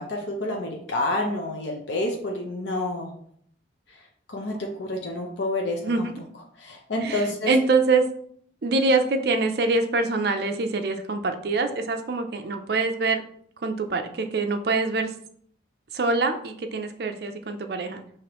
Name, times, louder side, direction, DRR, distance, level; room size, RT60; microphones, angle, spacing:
voice 1, 0.0-3.2 4.3-6.1 6.6-7.5, left 1 dB, 70° left, 1 dB, 0.6 m, -29 dB
voice 2, 7.0-8.0 8.6-13.2 13.6-15.1 15.9-18.0, right 3 dB, 55° right, 6 dB, 0.5 m, -24 dB
4.9 x 3.0 x 2.9 m, 0.62 s
head